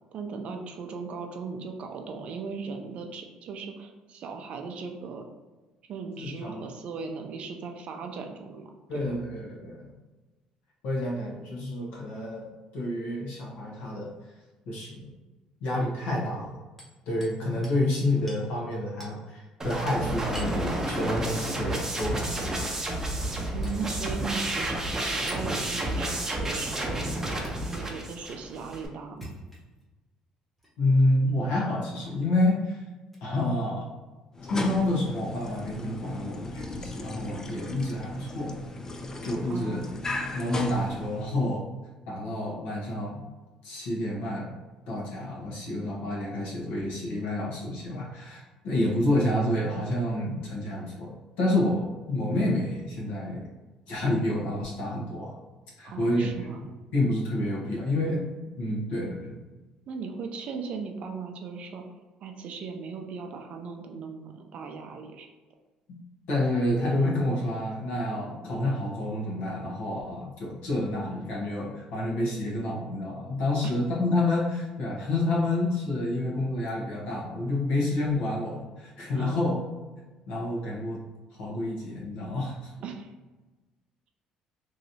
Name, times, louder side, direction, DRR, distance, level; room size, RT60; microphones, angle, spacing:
voice 1, 0.1-5.3 5.9-8.7 23.5-27.1 27.7-29.3 39.5-39.9 55.8-56.6 59.9-61.8 62.2-65.3 73.6-73.7 79.1-79.4 82.8-83.1, right 5 dB, 60° right, 4 dB, 0.5 m, -38 dB
voice 2, 6.2-6.6 8.9-9.9 10.8-12.5 12.7-14.1 14.7-15.1 15.6-16.5 17.1-22.6 30.8-32.8 33.2-33.9 34.5-38.6 39.2-41.6 42.1-43.2 43.6-44.5 44.9-51.1 51.4-53.4 53.9-55.3 55.8-56.5 56.9-58.3 58.6-59.4 66.3-79.5 80.3-81.0 81.4-82.7, left 1 dB, 80° left, -4 dB, 1.0 m, -29 dB
Hammer, 16.8-17.4 17.6-17.8 18.3-18.4 19.0-19.2 20.3-20.6 22.0-22.2 23.6-23.8 25.3-25.4 27.4-27.5 29.0-29.8 30.6-30.7 32.0-32.2 33.1-33.3 34.8-34.9, equal, 5° left, 1.0 m, -45 dB
sound 1, 19.6-28.9, right 1 dB, 20° right, 0.6 m, -31 dB
sound 2, 34.3-41.5, left 2 dB, 25° left, 0.4 m, -37 dB
3.1 x 2.7 x 2.7 m, 1.2 s
cardioid pair, 95°, 2 cm